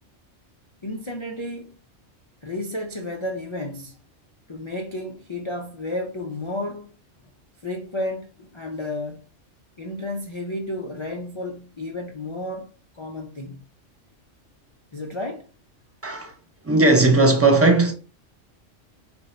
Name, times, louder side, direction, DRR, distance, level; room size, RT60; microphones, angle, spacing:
voice 1, 0.8-1.8 2.4-4.0 4.5-6.9 7.6-9.2 9.8-13.6 14.9-15.5, left 1 dB, 50° left, 0.3 m, -32 dB
voice 2, 16.0-16.3 16.6-17.9, right 2 dB, 20° right, 0.4 m, -17 dB
3.9 x 2.6 x 4.2 m
omnidirectional pair, 1.3 m